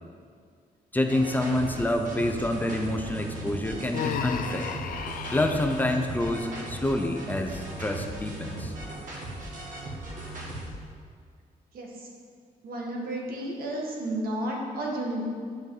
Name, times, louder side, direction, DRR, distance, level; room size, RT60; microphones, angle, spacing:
voice 1, 0.9-4.7 5.3-8.7, left 1 dB, 10° left, 4 dB, 0.6 m, -27 dB
sound 1, 1.1-10.7, right 1 dB, 55° right, 2.0 m, -38 dB
Human voice, 3.9-5.8, left 8 dB, 65° left, 0.5 m, -33 dB
voice 2, 12.6-15.3, right 1 dB, 75° right, -2 dB, 1.8 m, -32 dB
10.5 x 5.3 x 4.9 m, 2.1 s
wide cardioid pair, 150°, 16 cm